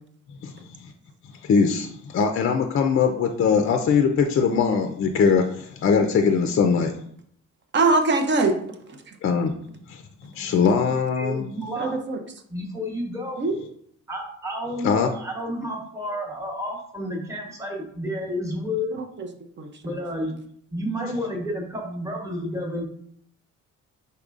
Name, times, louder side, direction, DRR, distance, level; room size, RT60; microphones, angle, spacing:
voice 1, 1.4-6.9 9.2-9.5 9.9-10.0 10.4-11.5 14.8-15.1, left 6 dB, 45° left, 5 dB, 0.4 m, -21 dB
voice 2, 7.7-8.6 9.1-9.2 11.8-12.2 13.4-13.6 18.9-19.3 19.6-19.7, right 3 dB, 35° right, 5 dB, 0.6 m, -22 dB
voice 3, 11.2-12.0 12.5-13.4 14.1-19.0 19.8-20.3 20.7-22.8, left 1 dB, 10° right, -1 dB, 1.0 m, -30 dB
5.2 x 4.1 x 2.4 m, 0.66 s
cardioid pair, 135°, 30 cm